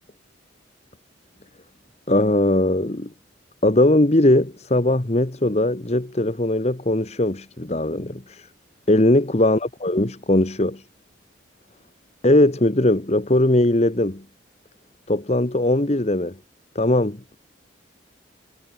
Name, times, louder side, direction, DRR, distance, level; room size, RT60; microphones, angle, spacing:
voice 1, 2.1-3.1 3.6-8.5 8.9-10.8 12.2-14.2 15.1-16.4 16.7-17.4, left 1 dB, 35° left, 1.3 m, -20 dB
head